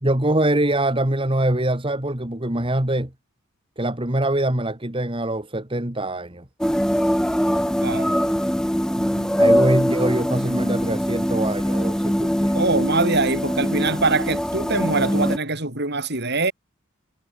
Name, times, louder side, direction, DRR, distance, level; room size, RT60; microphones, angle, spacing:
voice 1, 0.0-3.1 3.8-6.5 9.4-12.6, right 1 dB, 25° right, 2.4 m, -23 dB
sound 1, 6.6-15.4, equal, 5° left, 4.0 m, -22 dB
voice 2, 7.8-8.1 9.0-9.3 12.5-16.5, right 3 dB, 55° right, 7.7 m, -23 dB
head